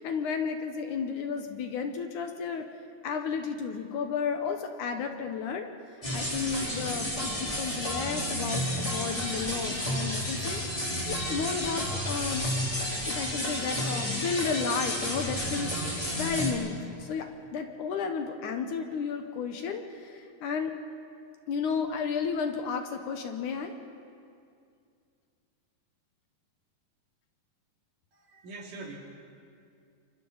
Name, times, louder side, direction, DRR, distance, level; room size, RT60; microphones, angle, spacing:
voice 1, 0.0-2.7 3.0-5.7 6.1-12.5 13.1-20.7 21.5-23.7, left 6 dB, 70° left, 5 dB, 2.3 m, -33 dB
sound 1, 6.0-16.5, equal, 10° left, 3.1 m, -31 dB
voice 2, 28.3-29.0, right 3 dB, 65° right, -1 dB, 3.9 m, -42 dB
29.0 x 25.5 x 4.0 m, 2.4 s
omnidirectional pair, 4.1 m